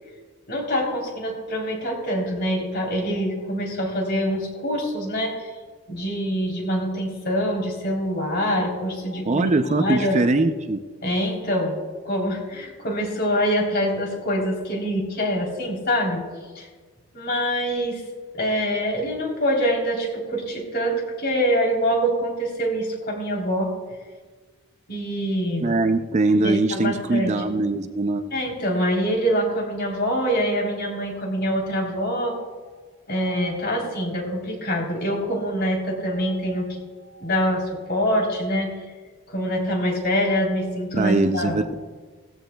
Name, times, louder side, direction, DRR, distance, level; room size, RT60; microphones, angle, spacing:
voice 1, 0.5-5.5 5.9-10.2 11.0-11.8 12.1-16.2 16.6-16.7 17.1-18.0 18.3-23.7 24.9-25.8 26.4-27.4 28.3-32.5 33.1-36.8 37.1-38.8 39.3-41.6, equal, 45° left, 0 dB, 3.4 m, -25 dB
voice 2, 9.3-10.8 25.6-28.3 40.9-41.7, right 2 dB, 30° right, 8 dB, 0.4 m, -22 dB
18.0 x 14.5 x 2.3 m, 1.4 s
head